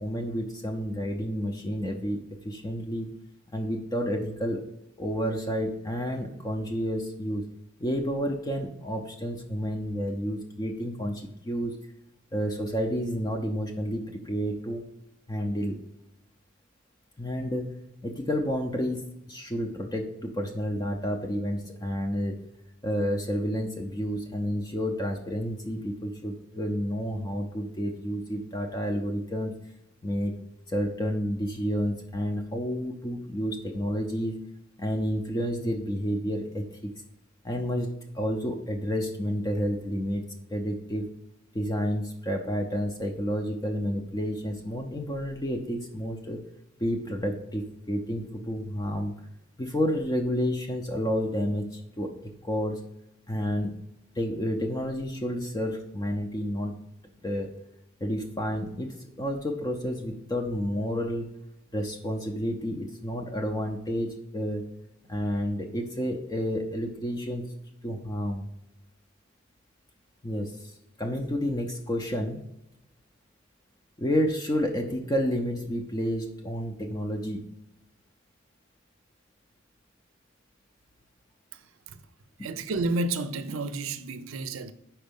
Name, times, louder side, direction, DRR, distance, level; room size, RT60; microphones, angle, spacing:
voice 1, 0.0-3.1 3.5-4.6 5.0-7.4 7.8-11.8 12.3-14.8 15.3-15.8 17.2-17.7 18.0-22.4 22.8-29.5 30.0-30.3 30.7-34.4 34.8-36.9 37.4-40.2 40.5-41.1 41.5-46.4 46.8-49.1 49.6-52.1 52.4-52.8 53.3-53.7 54.2-56.7 57.2-57.5 58.0-61.3 61.7-64.6 65.1-67.5 67.8-68.5 70.2-72.4 74.0-77.4 82.4-82.5, equal, 20° left, 0.5 m, -30 dB
voice 2, 81.5-82.0 82.4-84.7, right 2 dB, 85° right, 0.5 m, -31 dB
5.2 x 4.4 x 5.2 m
head